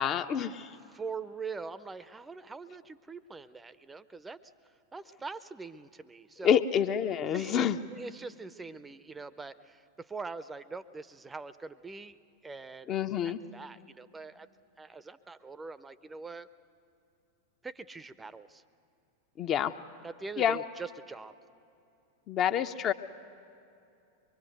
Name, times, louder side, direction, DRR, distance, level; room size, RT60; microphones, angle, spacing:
voice 1, 0.0-0.7 6.4-7.8 12.9-13.4 19.4-19.7 20.4-20.6 22.3-22.9, left 9 dB, 30° left, 9 dB, 0.8 m, -27 dB
voice 2, 0.9-4.5 4.9-6.6 7.3-12.2 12.4-13.0 13.2-14.5 14.8-16.5 17.6-18.6 20.0-21.3, right 4 dB, 10° right, 15 dB, 0.7 m, -43 dB
24.0 x 23.0 x 7.9 m, 2.7 s
figure-of-eight pair, 90°, 0 cm